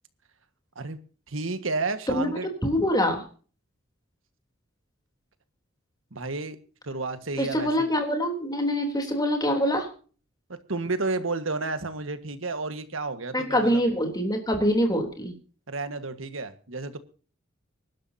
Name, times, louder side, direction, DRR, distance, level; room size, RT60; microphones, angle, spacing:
voice 1, 1.3-2.5 6.1-6.6 6.8-7.9 10.7-13.8 15.7-17.0, right 3 dB, 80° right, 1.6 m, -31 dB
voice 2, 2.6-3.3 7.4-9.9 13.3-15.3, equal, 20° left, 3.4 m, -24 dB
24.5 x 12.0 x 2.8 m
head